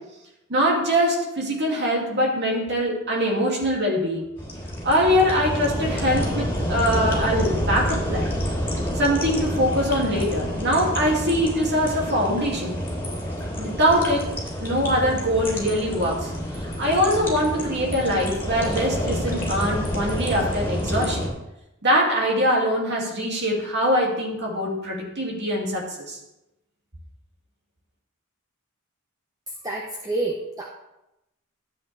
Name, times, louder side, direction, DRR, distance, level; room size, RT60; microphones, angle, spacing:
voice 1, 0.5-4.3 4.8-8.3 8.9-12.8 13.6-14.3 14.6-21.3 21.8-26.2, equal, 55° right, -2 dB, 2.7 m, -23 dB
sound 1, 4.4-21.3, equal, 10° left, 3.7 m, -28 dB
voice 2, 29.6-30.7, right 2 dB, 15° right, 0 dB, 0.9 m, -28 dB
13.0 x 8.2 x 3.5 m, 0.91 s
head